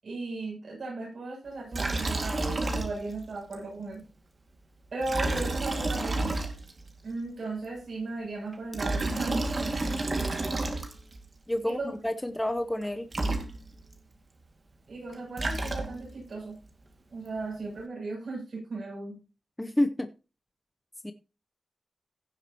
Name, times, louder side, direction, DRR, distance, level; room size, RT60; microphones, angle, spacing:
voice 1, 0.0-4.0 4.9-6.4 7.0-9.9 11.6-11.9 14.9-16.6 17.1-19.2, right 3 dB, 60° right, -2 dB, 7.6 m, -36 dB
Liquid, 1.7-3.2 3.5-3.6 5.0-6.9 8.5-11.2 12.8-12.9 13.1-13.9 15.1-16.2, right 2 dB, 40° right, 2.1 m, -30 dB
voice 2, 11.5-11.8 12.0-13.1 19.6-20.1 21.0-21.1, left 1 dB, 10° left, 8 dB, 0.8 m, -28 dB
16.5 x 7.2 x 3.0 m, 0.31 s
wide cardioid pair, 115°, 0 cm